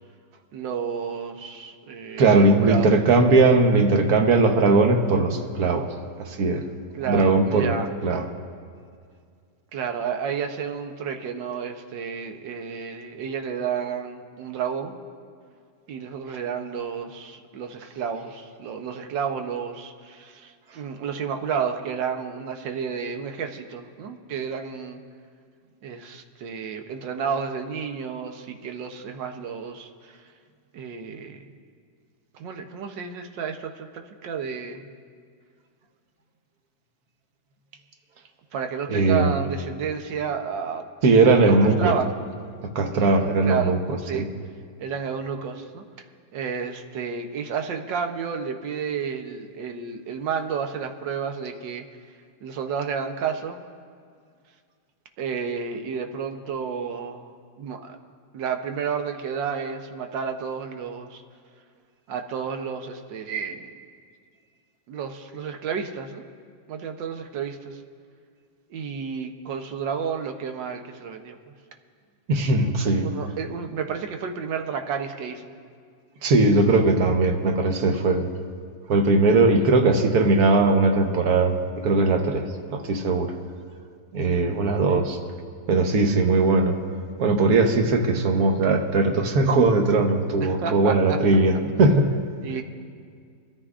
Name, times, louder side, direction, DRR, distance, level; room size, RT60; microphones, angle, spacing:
voice 1, 0.5-2.9 6.9-7.9 9.7-14.9 15.9-25.0 25.8-30.2 30.7-31.4 32.4-34.9 38.5-40.9 41.4-42.1 42.9-43.8 44.0-44.3 44.8-45.8 46.3-51.8 52.4-53.6 55.2-57.3 57.6-58.0 58.3-61.2 62.1-63.7 64.9-66.2 66.7-67.8 68.7-71.4 72.8-75.5 84.9-85.0 90.4-91.2 92.4-92.6, right 6 dB, 90° right, 5 dB, 1.6 m, -31 dB
voice 2, 2.2-5.9 6.2-6.6 7.0-7.7 8.0-8.2 38.9-39.4 41.0-41.9 42.7-44.3 72.3-73.1 76.2-78.3 78.9-82.4 82.7-83.3 84.1-85.2 85.7-86.8 87.2-92.1, right 3 dB, 60° right, 4 dB, 1.4 m, -19 dB
23.5 x 13.5 x 2.5 m, 2.2 s
omnidirectional pair, 1.9 m